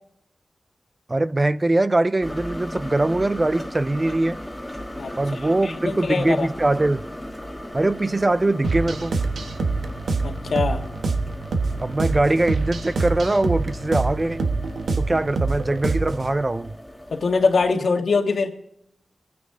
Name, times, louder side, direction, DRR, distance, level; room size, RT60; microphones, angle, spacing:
voice 1, 1.1-4.4 5.2-7.1 7.7-9.2 11.8-14.4 15.0-16.7, right 2 dB, 25° right, 0.4 m, -22 dB
sound 1, 2.2-17.7, equal, ahead, 1.3 m, -37 dB
voice 2, 5.6-6.5 10.2-10.8 17.1-18.5, left 4 dB, 70° left, 1.6 m, -22 dB
sound 2, 8.6-16.3, right 3 dB, 85° right, 1.2 m, -25 dB
26.5 x 9.5 x 3.7 m
wide cardioid pair, 125°, 0 cm